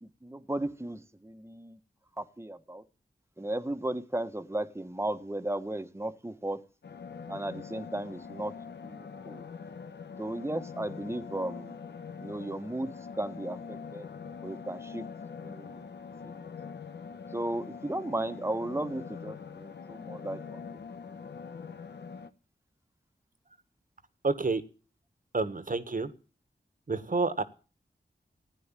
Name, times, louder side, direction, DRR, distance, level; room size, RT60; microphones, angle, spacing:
voice 1, 0.0-1.8 2.2-2.8 3.4-6.6 7.3-8.5 8.8-9.4 10.2-11.8 12.2-12.9 13.2-14.1 14.4-15.0 15.4-15.8 16.2-16.5 17.3-20.8, right 1 dB, 15° right, 9 dB, 1.4 m, -35 dB
sound 1, 6.8-22.3, left 5 dB, 80° left, 1.0 m, -43 dB
voice 2, 24.2-24.6 25.3-26.1 26.9-27.4, right 3 dB, 50° right, 12 dB, 1.5 m, -29 dB
15.0 x 9.7 x 7.5 m, 0.37 s
cardioid pair, 50°, 18 cm